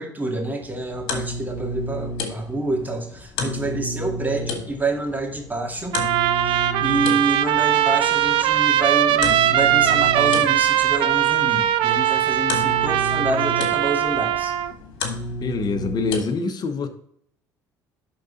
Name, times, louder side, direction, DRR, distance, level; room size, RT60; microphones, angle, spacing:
voice 1, 0.0-6.0 6.4-14.5, right 2 dB, 20° right, 2.3 m, -27 dB
sound 1, 0.6-16.2, left 1 dB, 65° left, 1.7 m, -32 dB
voice 2, 3.4-3.8 15.4-16.9, left 4 dB, 45° left, 1.0 m, -26 dB
Trumpet, 5.9-14.7, right 12 dB, 65° right, 0.5 m, -20 dB
10.5 x 4.0 x 3.9 m
hypercardioid pair, 60°, 9 cm